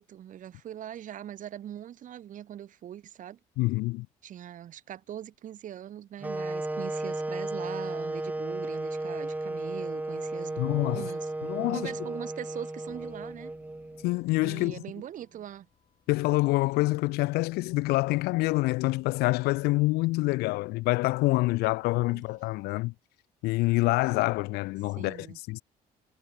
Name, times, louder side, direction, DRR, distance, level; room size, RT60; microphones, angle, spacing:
voice 1, 0.0-3.4 4.2-11.3 11.7-13.5 14.4-15.7 22.1-22.2 25.0-25.4, right 11 dB, 55° right, 1.7 m, -42 dB
voice 2, 3.6-4.1 10.6-11.1 11.4-11.9 14.0-14.8 16.1-22.9 23.4-25.6, left 21 dB, 80° left, 0.5 m, -26 dB
sound 1, 6.2-14.2, right 2 dB, 10° right, 1.5 m, -34 dB
sound 2, 12.9-22.5, left 7 dB, 45° left, 7.2 m, -61 dB
cardioid pair, 95°, 16 cm